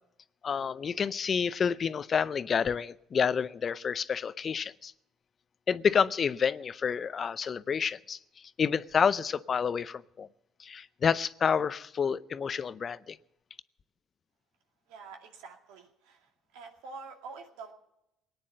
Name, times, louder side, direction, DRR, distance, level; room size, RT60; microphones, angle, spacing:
voice 1, 0.4-4.9 5.7-8.2 8.6-10.3 10.6-13.2, left 6 dB, 40° left, 0.6 m, -29 dB
voice 2, 14.9-17.7, right 4 dB, 85° right, 2.3 m, -47 dB
19.0 x 9.6 x 7.7 m
supercardioid pair, 80°, 0 cm